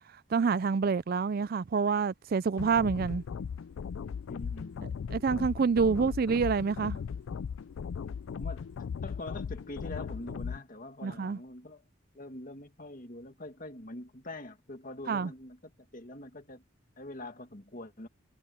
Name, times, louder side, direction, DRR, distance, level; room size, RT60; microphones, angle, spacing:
voice 1, 0.3-3.2 5.1-7.0 11.0-11.4 15.1-15.3, right 5 dB, 45° right, 0.4 m, -27 dB
sound 1, 2.6-10.6, left 6 dB, 70° left, 0.3 m, -38 dB
voice 2, 4.3-5.2 5.8-5.9 8.3-8.7 9.0-11.8 12.1-16.6 17.0-18.1, left 1 dB, 40° left, 2.2 m, -44 dB
head